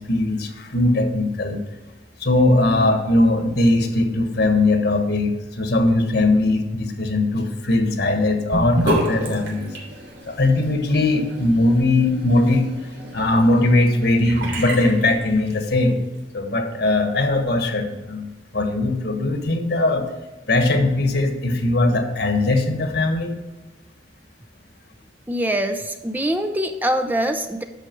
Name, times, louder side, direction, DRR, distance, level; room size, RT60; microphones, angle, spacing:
voice 1, 0.0-1.6 2.2-9.7 10.3-12.7 13.1-16.0 16.3-20.1 20.5-23.4, left 2 dB, 60° left, 5 dB, 1.5 m, -20 dB
Sink (filling or washing) / Bathtub (filling or washing), 8.5-15.8, right 1 dB, 90° right, 3.5 m, -30 dB
voice 2, 25.3-27.6, right 1 dB, 10° right, 6 dB, 0.6 m, -23 dB
10.5 x 6.9 x 4.5 m, 1.1 s
head